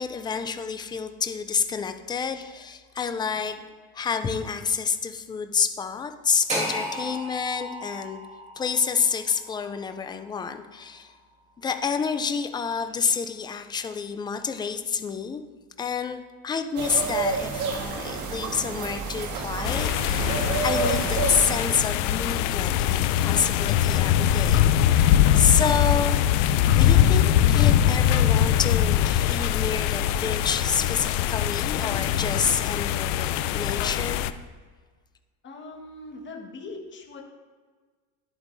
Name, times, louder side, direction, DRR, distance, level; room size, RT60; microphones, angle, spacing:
voice 1, 0.0-3.5 3.9-8.2 8.6-11.2 11.6-15.4 15.8-24.6 24.9-26.2 26.7-34.3, left 6 dB, 15° left, 8 dB, 0.4 m, -28 dB
sound 1, 6.5-10.6, equal, 20° right, 2.0 m, -34 dB
sound 2, 16.8-21.7, right 4 dB, 55° right, 1.6 m, -29 dB
sound 3, 19.6-34.3, left 10 dB, 80° left, 0.5 m, -22 dB
voice 2, 35.4-37.2, left 2 dB, 30° left, 1 dB, 1.5 m, -41 dB
10.5 x 8.1 x 2.6 m, 1.5 s
supercardioid pair, 125°, 36 cm